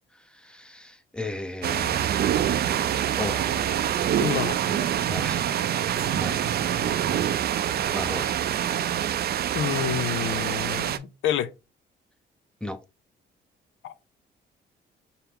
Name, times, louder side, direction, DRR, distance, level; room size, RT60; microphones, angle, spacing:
voice 1, 0.2-2.6 3.2-3.4 5.1-5.5 6.1-6.4 7.9-8.4 12.6-12.8, left 2 dB, 5° left, 0.6 m, -35 dB
sound 1, 1.6-11.0, right 10 dB, 50° right, 0.4 m, -25 dB
voice 2, 4.2-4.6 6.8-7.3 9.5-11.5 13.8-13.9, left 10 dB, 75° left, 0.5 m, -29 dB
5.6 x 2.0 x 3.4 m
cardioid pair, 90°, 20 cm